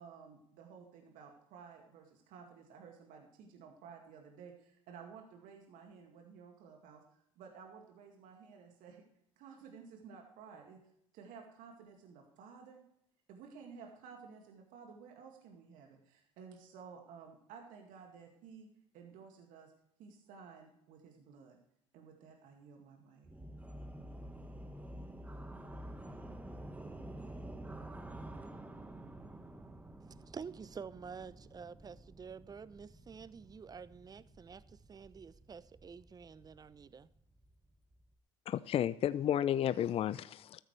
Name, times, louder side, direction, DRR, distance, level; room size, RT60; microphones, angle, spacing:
voice 1, 0.0-7.0 7.4-9.0 9.4-10.8 11.1-12.8 13.3-18.7 18.9-19.7 20.0-21.6 21.9-23.3, right 6 dB, 60° right, 2 dB, 2.1 m, -54 dB
sound 1, 23.2-38.1, right 1 dB, 10° right, 1.4 m, -50 dB
voice 2, 30.0-34.6 34.9-37.1, right 6 dB, 25° right, 17 dB, 0.7 m, -49 dB
voice 3, 38.5-40.6, left 10 dB, 40° left, 18 dB, 0.5 m, -32 dB
14.0 x 13.5 x 3.3 m, 0.74 s
hypercardioid pair, 65°, 15 cm